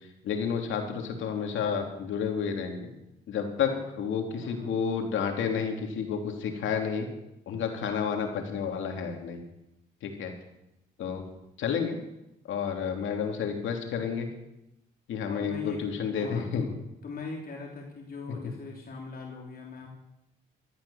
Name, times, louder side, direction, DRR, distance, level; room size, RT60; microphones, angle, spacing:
voice 1, 0.2-2.9 3.3-3.7 4.0-7.1 7.5-9.4 10.0-10.3 11.0-11.2 11.6-12.0 12.5-14.3 15.1-16.7, left 6 dB, 75° left, 3 dB, 3.1 m, -30 dB
voice 2, 4.4-4.7 15.3-15.8 16.1-16.7 17.0-19.9, left 4 dB, 50° left, 0 dB, 3.3 m, -40 dB
15.0 x 13.0 x 7.1 m, 0.90 s
cardioid pair, 90°, 20 cm